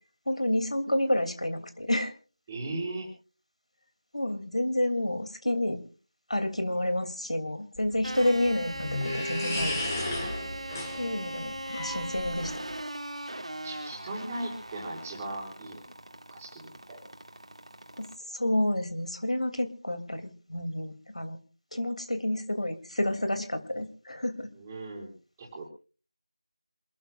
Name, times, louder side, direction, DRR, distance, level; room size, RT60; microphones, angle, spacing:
voice 1, 0.3-2.1 4.1-5.8 6.3-10.1 10.9-12.5 18.0-21.4 21.7-24.5, left 1 dB, 85° left, 8 dB, 2.8 m, -29 dB
voice 2, 2.5-3.1 13.6-15.8 16.3-17.0 24.5-25.1 25.4-25.7, right 2 dB, 10° right, -4 dB, 5.1 m, -38 dB
sound 1, 7.8-12.7, left 1 dB, 25° left, 5.1 m, -34 dB
sound 2, 8.0-18.2, right 1 dB, 70° right, 2.5 m, -40 dB
27.5 x 13.0 x 2.5 m, 0.38 s
figure-of-eight pair, 170°, 3 cm